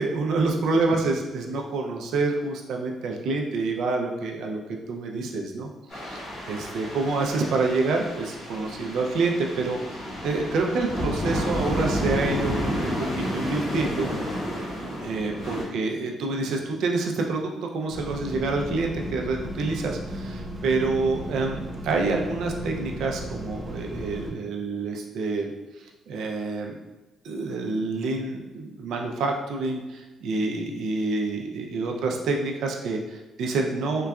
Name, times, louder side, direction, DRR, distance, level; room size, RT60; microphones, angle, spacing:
voice 1, 0.0-4.6 4.9-6.2 6.5-13.1 13.3-14.1 15.0-25.5 25.8-26.8 27.2-34.1, right 3 dB, 80° right, 1 dB, 0.4 m, -27 dB
sound 1, 5.9-15.6, equal, 65° left, 1.5 m, -31 dB
sound 2, 17.9-24.3, equal, 15° right, 0.6 m, -35 dB
3.8 x 2.2 x 2.3 m, 1.1 s
cardioid pair, 90°, 0 cm